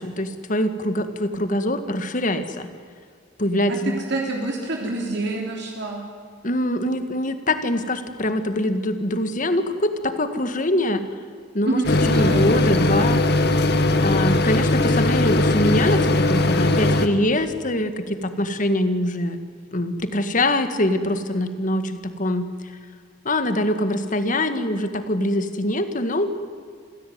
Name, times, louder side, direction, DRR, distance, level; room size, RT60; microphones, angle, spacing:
voice 1, 0.0-2.7 3.4-4.0 6.4-11.0 11.6-11.8 12.1-13.2 14.0-19.4 19.7-22.5 23.3-26.3, left 1 dB, 45° left, 10 dB, 1.8 m, -23 dB
voice 2, 3.7-6.0 11.7-12.4, right 2 dB, 65° right, 0 dB, 3.5 m, -27 dB
sound 1, 11.8-17.1, left 2 dB, 60° left, 1.8 m, -19 dB
27.0 x 16.5 x 9.5 m, 2.2 s
head